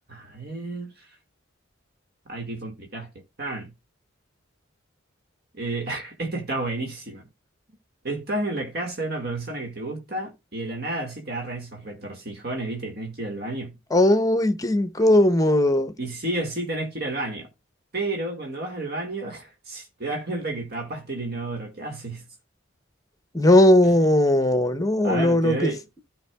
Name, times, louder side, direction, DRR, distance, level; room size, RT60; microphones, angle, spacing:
voice 1, 0.1-1.2 2.3-3.1 3.4-3.7 5.5-7.3 8.0-13.8 16.0-17.5 17.9-22.3 25.0-25.8, right 2 dB, 50° right, 1.8 m, -31 dB
voice 2, 13.9-15.9 23.3-25.7, left 1 dB, 15° left, 0.8 m, -18 dB
15.5 x 5.3 x 2.3 m
head